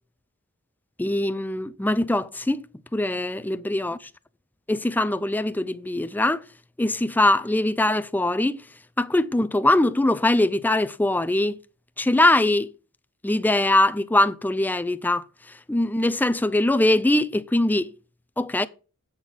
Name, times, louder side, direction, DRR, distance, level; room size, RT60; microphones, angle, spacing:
voice 1, 1.0-2.6 2.9-4.0 4.7-6.4 6.8-8.6 9.0-11.6 12.0-12.7 13.2-15.2 15.7-17.9 18.4-18.7, left 1 dB, 10° left, 0.4 m, -22 dB
8.8 x 6.4 x 5.6 m
head